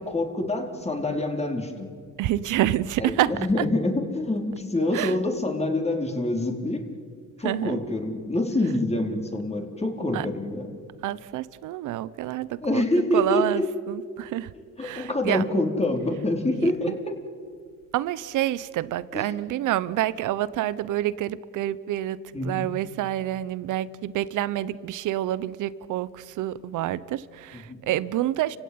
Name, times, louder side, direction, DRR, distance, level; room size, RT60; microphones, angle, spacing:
voice 1, 0.1-1.9 3.0-6.9 7.4-10.7 12.6-13.7 14.8-17.2 19.1-19.2 22.3-22.6 27.5-27.8, left 1 dB, 20° left, 3 dB, 4.3 m, -26 dB
voice 2, 2.2-3.7 4.9-5.2 7.4-7.8 10.1-10.3 11.0-12.8 13.1-14.5 14.8-15.5 16.5-16.9 17.9-22.2 22.4-28.6, right 13 dB, 85° right, 18 dB, 0.9 m, -28 dB
30.0 x 16.5 x 9.6 m, 2.1 s
cardioid pair, 90°, 30 cm